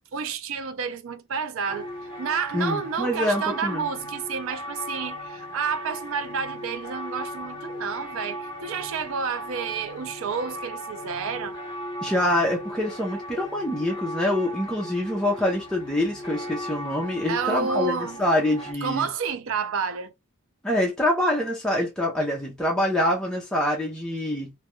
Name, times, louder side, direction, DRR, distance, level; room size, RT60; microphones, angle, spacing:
voice 1, 0.1-1.9 2.2-11.6 17.3-18.2 18.8-20.1, right 6 dB, 65° right, 0.4 m, -30 dB
sound 1, 1.7-18.7, equal, 25° left, 0.8 m, -37 dB
voice 2, 2.5-3.9 12.0-19.1 20.6-24.5, left 1 dB, 5° left, 0.4 m, -25 dB
2.2 x 2.1 x 2.9 m
head